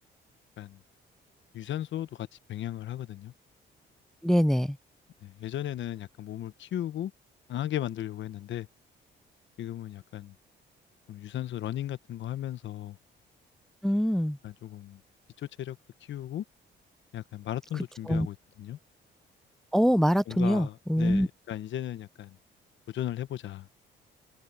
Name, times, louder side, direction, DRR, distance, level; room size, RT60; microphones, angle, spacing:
voice 1, 1.5-3.3 5.2-7.1 7.5-8.7 9.6-10.3 11.1-13.0 14.4-15.0 15.4-16.4 17.1-18.8 20.3-22.4 22.9-23.7, left 12 dB, 70° left, 1.1 m, -36 dB
voice 2, 4.2-4.8 13.8-14.4 18.1-18.3 19.7-21.3, equal, ahead, 0.4 m, -24 dB
cardioid pair, 90°, 20 cm